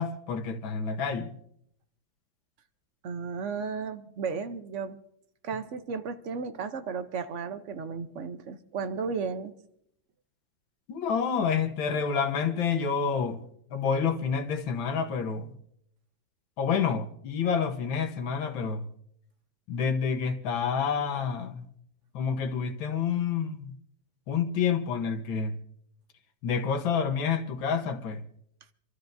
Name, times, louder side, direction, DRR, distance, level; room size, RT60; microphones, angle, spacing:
voice 1, 0.0-1.3 10.9-13.4 13.7-15.5 16.6-18.9 19.7-21.7 22.1-23.7 24.3-25.6 26.4-28.2, left 6 dB, 85° left, 1.9 m, -28 dB
voice 2, 3.0-5.0 5.4-9.5, right 5 dB, 55° right, 0.9 m, -34 dB
27.5 x 13.0 x 2.6 m
omnidirectional pair, 2.1 m